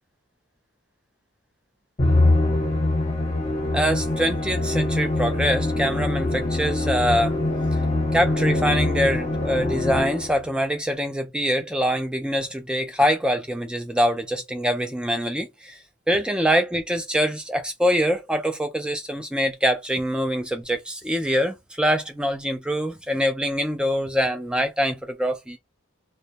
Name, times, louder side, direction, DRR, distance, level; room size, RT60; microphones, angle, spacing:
Musical instrument, 2.0-10.5, left 2 dB, 30° left, 0.9 m, -23 dB
voice 1, 3.7-7.4 8.1-15.8 16.1-25.6, equal, 5° right, 0.3 m, -24 dB
2.2 x 2.1 x 2.7 m
head